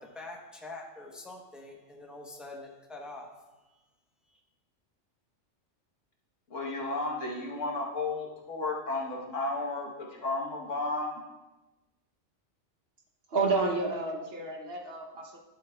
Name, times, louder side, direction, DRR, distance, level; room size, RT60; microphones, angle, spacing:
voice 1, 0.0-3.3 3.6-3.8 4.2-4.4, left 2 dB, ahead, -1 dB, 0.8 m, -45 dB
voice 2, 6.5-11.2, left 2 dB, 75° left, -1 dB, 1.6 m, -33 dB
voice 3, 13.3-15.4, right 3 dB, 55° right, 2 dB, 1.1 m, -30 dB
11.5 x 7.5 x 2.3 m, 1.1 s
omnidirectional pair, 1.3 m